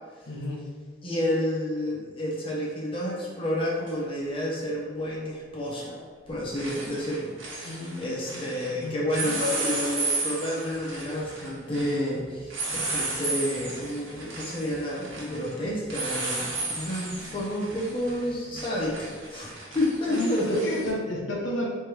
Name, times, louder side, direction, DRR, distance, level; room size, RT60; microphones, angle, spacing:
voice 1, 0.3-0.6 7.6-9.4 20.1-21.7, left 1 dB, 75° left, -2 dB, 1.0 m, -32 dB
voice 2, 1.0-5.9 6.3-20.6, left 1 dB, 25° left, -4 dB, 0.9 m, -30 dB
sound 1, 3.9-4.0 5.7-6.0 6.3-8.7 9.1-20.9, right 3 dB, 85° right, 1.3 m, -34 dB
3.4 x 3.1 x 4.7 m, 1.5 s
head